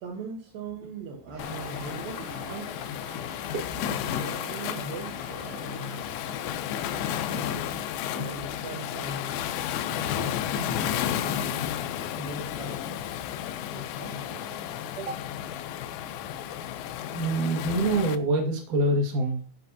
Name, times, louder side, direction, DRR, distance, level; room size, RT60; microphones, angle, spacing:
voice 1, 0.0-3.0 3.7-6.0 6.4-7.8 8.1-9.4 9.9-10.5 10.8-11.6 12.1-13.1 13.4-14.6 15.0-15.3 17.5-17.7, right 3 dB, 75° right, 0 dB, 2.2 m, -40 dB
sound 1, 1.3-6.5, right 4 dB, 90° right, 7.4 m, -48 dB
Waves surf, 1.4-18.2, left 10 dB, 90° left, 3.5 m, -32 dB
voice 2, 10.5-10.9 17.1-19.4, right 1 dB, 55° right, 1 dB, 2.4 m, -26 dB
14.0 x 5.8 x 2.8 m, 0.42 s
omnidirectional pair, 6.0 m